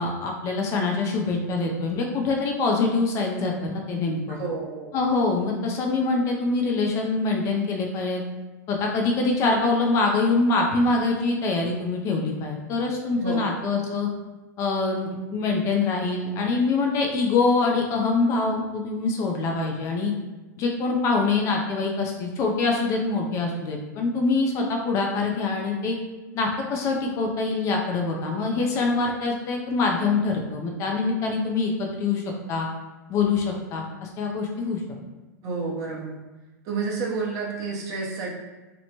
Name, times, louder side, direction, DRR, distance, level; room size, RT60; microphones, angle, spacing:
voice 1, 0.0-4.4 4.9-8.2 8.7-14.1 14.6-20.1 20.6-26.0 26.3-32.7 33.1-34.8, left 3 dB, 30° left, 1 dB, 0.4 m, -24 dB
voice 2, 4.4-4.9 13.2-13.5 35.4-36.2 36.6-38.3, right 4 dB, 35° right, -3 dB, 0.7 m, -30 dB
2.8 x 2.1 x 2.8 m, 1.2 s
hypercardioid pair, 130°, 10 cm